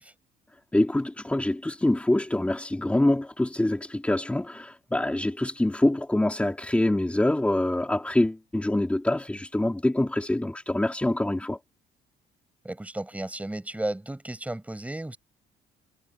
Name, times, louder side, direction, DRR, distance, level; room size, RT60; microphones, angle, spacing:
voice 1, 0.7-11.6, left 1 dB, 5° left, 3.4 m, -25 dB
voice 2, 12.6-15.2, right 1 dB, 10° right, 6.9 m, -33 dB
cardioid pair, 110°, 17 cm